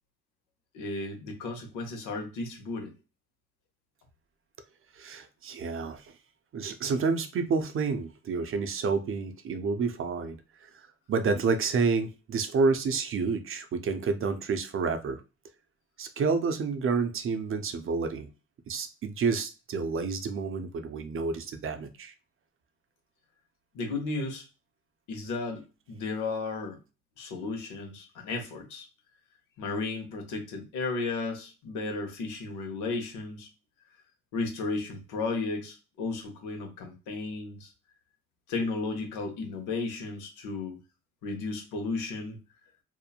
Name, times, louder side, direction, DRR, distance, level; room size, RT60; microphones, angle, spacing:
voice 1, 0.7-2.9 23.7-24.4 25.1-26.8 27.2-28.9 29.6-33.5 34.3-37.7 38.5-40.8 41.2-42.4, left 3 dB, 90° left, 4 dB, 0.8 m, -34 dB
voice 2, 4.9-6.1 6.5-15.2 16.0-18.3 18.7-22.1, right 4 dB, 45° right, 8 dB, 0.5 m, -29 dB
2.9 x 2.1 x 2.3 m, 0.31 s
cardioid pair, 90°, 30 cm